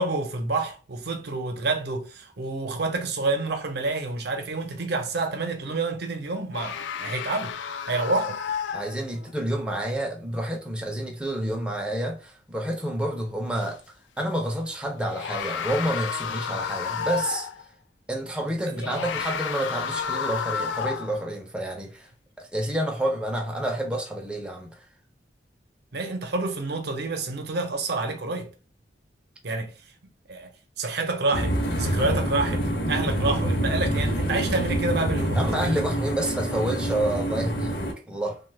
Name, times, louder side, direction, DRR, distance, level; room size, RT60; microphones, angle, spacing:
voice 1, 0.0-7.6 7.9-8.4 18.7-19.1 25.9-28.5 29.4-29.7 30.3-30.5 30.8-36.1, right 3 dB, 65° right, 0.6 m, -28 dB
sound 1, 6.5-9.3 13.5-13.7 15.0-17.6 18.7-21.2, left 7 dB, 90° left, 0.3 m, -31 dB
voice 2, 8.7-13.8 14.2-17.5 18.1-22.1 22.4-24.8 35.4-37.8 38.1-38.4, right 1 dB, 5° right, 0.4 m, -29 dB
Vent noise, 31.3-37.9, right 1 dB, 65° left, 0.7 m, -26 dB
2.9 x 2.2 x 3.2 m
head